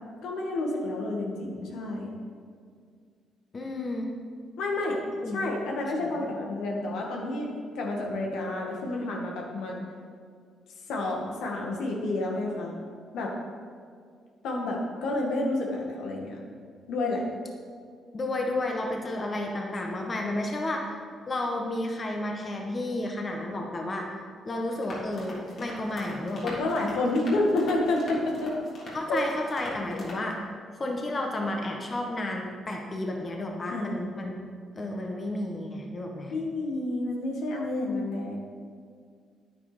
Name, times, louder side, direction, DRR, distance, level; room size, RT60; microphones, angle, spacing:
voice 1, 0.2-2.1 4.6-5.0 5.3-7.5 7.8-9.9 10.9-12.8 13.1-13.3 14.4-16.4 16.9-17.2 26.4-28.5 29.1-29.2 33.7-34.3 36.3-38.4, left 2 dB, 85° left, -1 dB, 2.0 m, -29 dB
voice 2, 3.5-4.1 5.2-5.4 6.1-6.3 18.1-20.9 21.3-24.1 24.4-26.6 28.9-30.4 30.8-34.4 34.7-36.3, left 1 dB, 35° left, 1 dB, 1.5 m, -32 dB
sound 1, 24.8-30.3, left 1 dB, 55° left, 3.2 m, -42 dB
9.7 x 9.5 x 5.2 m, 2.1 s
cardioid pair, 90°, 0 cm